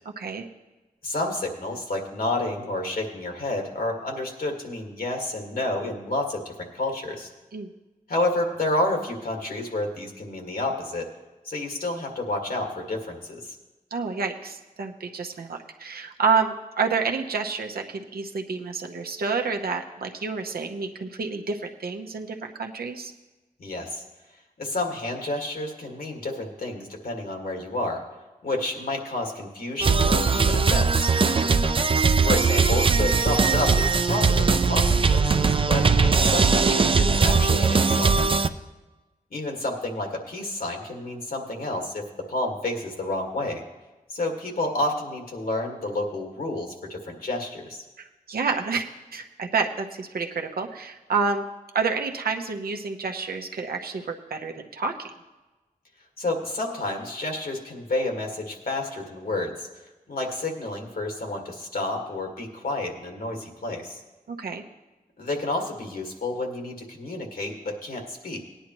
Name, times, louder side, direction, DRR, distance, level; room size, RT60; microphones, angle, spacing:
voice 1, 1.0-7.3 8.1-11.1 11.5-13.6 23.6-24.0 24.6-28.0 28.4-31.1 32.2-38.1 39.3-43.6 44.1-47.8 56.2-59.7 60.1-64.0 65.2-68.4, left 2 dB, 75° left, 1 dB, 1.9 m, -30 dB
voice 2, 13.9-23.1 31.4-31.6 48.3-48.8 49.1-51.4 51.7-55.1 64.3-64.6, right 5 dB, 90° right, 3 dB, 0.9 m, -29 dB
sound 1, 29.8-38.5, right 4 dB, 35° right, 0.4 m, -20 dB
18.0 x 10.0 x 3.0 m, 1.1 s
wide cardioid pair, 70°, 15 cm